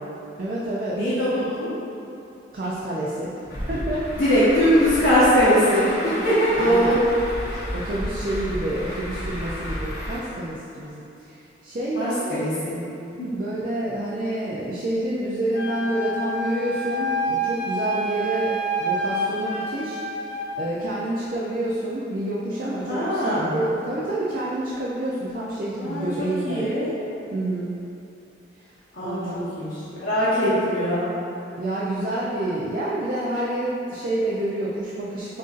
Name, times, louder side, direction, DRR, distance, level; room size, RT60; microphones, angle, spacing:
voice 1, 0.4-1.0 2.5-3.3 3.6-4.1 6.6-7.0 7.7-12.3 13.3-20.0 20.6-26.7 27.3-27.7 28.5-28.7 29.0-29.7 31.6-35.4, right 1 dB, 50° right, -7 dB, 0.4 m, -28 dB
voice 2, 0.9-1.7 4.2-7.0 11.9-12.7 13.2-13.3 22.9-23.5 25.9-26.9 28.9-29.7 30.0-31.1, equal, 75° left, -14 dB, 1.1 m, -21 dB
Truck, 3.5-10.2, equal, 55° left, 0.9 m, -32 dB
Wind instrument woodwind instrument, 15.5-20.5, right 1 dB, 40° left, 1.3 m, -27 dB
7.4 x 2.6 x 2.5 m, 2.8 s
head